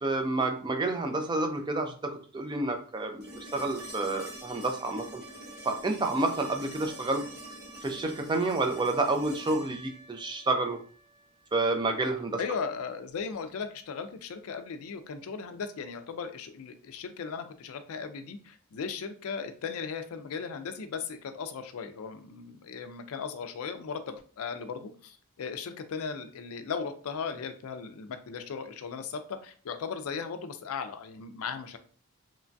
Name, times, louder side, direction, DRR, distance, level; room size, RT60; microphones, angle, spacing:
voice 1, 0.0-5.2 5.6-7.2 7.8-10.8 11.5-12.4, right 2 dB, 20° right, 4 dB, 0.4 m, -29 dB
sound 1, 3.2-11.3 13.4-13.5, right 1 dB, 45° right, 1.0 m, -46 dB
voice 2, 12.4-31.8, left 5 dB, 70° left, 9 dB, 0.4 m, -37 dB
3.0 x 2.2 x 2.6 m, 0.44 s
head